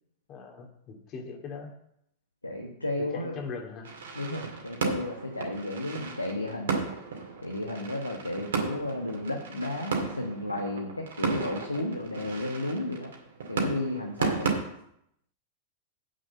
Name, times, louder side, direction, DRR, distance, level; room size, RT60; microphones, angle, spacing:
voice 1, 0.3-1.7 3.0-3.9, left 5 dB, 35° left, 3 dB, 2.3 m, -40 dB
voice 2, 2.4-3.4 4.1-6.8 7.4-13.1 13.5-14.5, left 1 dB, 85° left, 2 dB, 1.2 m, -33 dB
sound 1, 3.8-14.5, right 4 dB, 60° right, 2.2 m, -34 dB
8.3 x 6.4 x 7.6 m, 0.76 s
figure-of-eight pair, 90°, 0 cm